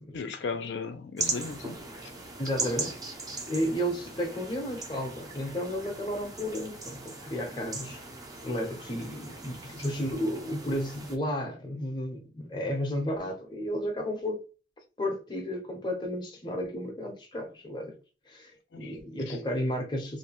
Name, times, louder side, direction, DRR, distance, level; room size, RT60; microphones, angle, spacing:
voice 1, 0.1-1.8 9.8-9.9 18.7-19.0 19.3-19.4, left 5 dB, 80° left, 0.4 m, -36 dB
sound 1, 1.2-11.2, right 3 dB, 20° right, 0.5 m, -39 dB
voice 2, 2.4-8.0 8.4-14.4 15.0-18.0 18.3-20.2, equal, 25° left, 0.6 m, -33 dB
2.5 x 2.1 x 2.8 m
head